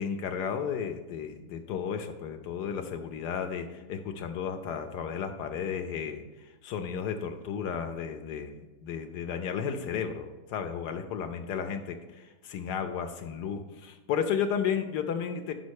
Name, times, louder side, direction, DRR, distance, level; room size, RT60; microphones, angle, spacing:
voice 1, 0.0-15.5, left 7 dB, 80° left, 6 dB, 1.2 m, -33 dB
5.8 x 5.2 x 6.3 m, 1.1 s
omnidirectional pair, 1.8 m